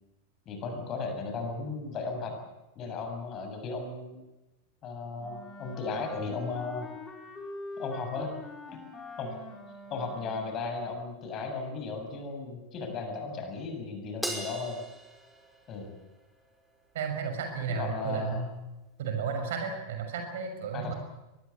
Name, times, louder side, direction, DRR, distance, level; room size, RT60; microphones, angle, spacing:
voice 1, 0.5-2.3 2.8-4.2 4.8-6.9 7.8-8.3 9.2-9.4 9.9-14.8 15.7-16.0 17.7-18.4 20.7-20.9, left 4 dB, 30° left, 5 dB, 7.2 m, -35 dB
Wind instrument woodwind instrument, 5.2-10.6, left 2 dB, 15° left, 6.4 m, -44 dB
Crash cymbal, 14.2-16.8, right 1 dB, ahead, 5.3 m, -40 dB
voice 2, 16.9-18.4 19.0-20.9, right 6 dB, 55° right, 5 dB, 6.2 m, -33 dB
23.5 x 21.0 x 8.5 m, 1.0 s
figure-of-eight pair, 90°, 0 cm